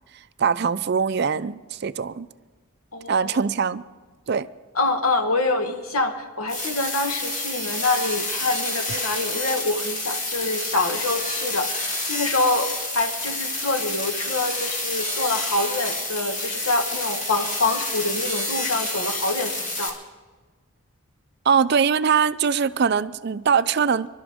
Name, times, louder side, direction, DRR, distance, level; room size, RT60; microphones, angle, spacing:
voice 1, 0.4-2.3 3.1-3.8 4.3-4.5 8.9-9.0 21.5-24.1, right 6 dB, 50° right, 0.4 m, -22 dB
voice 2, 2.9-3.4 4.7-19.9, left 2 dB, 80° left, 1.4 m, -26 dB
sound 1, 6.5-19.9, left 2 dB, 30° left, 2.3 m, -29 dB
26.0 x 12.0 x 3.6 m
head